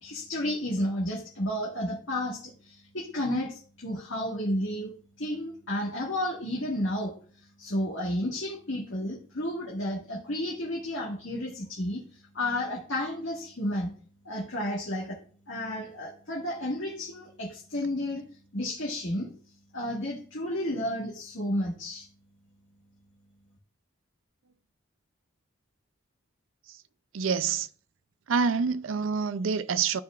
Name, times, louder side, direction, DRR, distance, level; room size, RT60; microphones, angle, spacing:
voice 1, 0.0-4.9 5.2-13.9 14.2-15.2 15.5-18.2 18.5-19.3 19.7-22.1, left 1 dB, 75° left, 1.8 m, -32 dB
voice 2, 27.1-27.7 28.3-30.0, right 5 dB, 80° right, 0.5 m, -27 dB
13.5 x 4.8 x 2.4 m
head